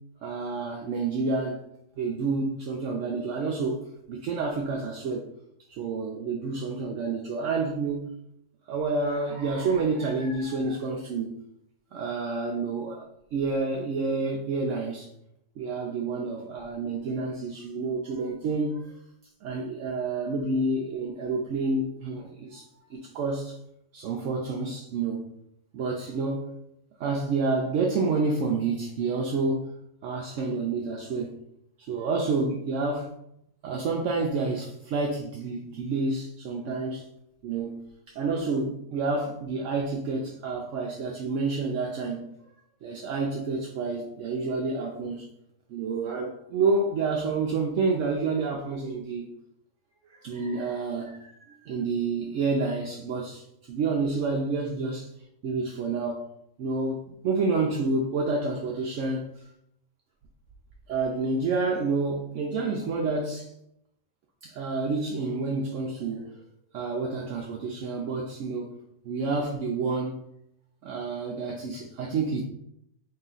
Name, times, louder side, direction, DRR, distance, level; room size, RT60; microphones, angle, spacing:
voice 1, 0.2-1.6 2.0-3.8 4.1-5.3 5.8-8.1 8.7-11.3 11.9-13.0 13.3-15.1 15.6-18.9 19.4-23.6 23.9-25.3 25.7-26.5 27.0-29.7 30.0-31.3 31.9-33.1 33.6-37.0 37.4-42.3 42.8-45.2 45.7-49.3 50.1-55.1 55.4-56.3 56.6-59.2 60.9-63.5 64.4-66.4 66.7-68.8 69.0-70.1 70.8-72.4, right 3 dB, 70° right, -1 dB, 0.9 m, -29 dB
3.9 x 2.4 x 3.8 m, 0.77 s
omnidirectional pair, 1.4 m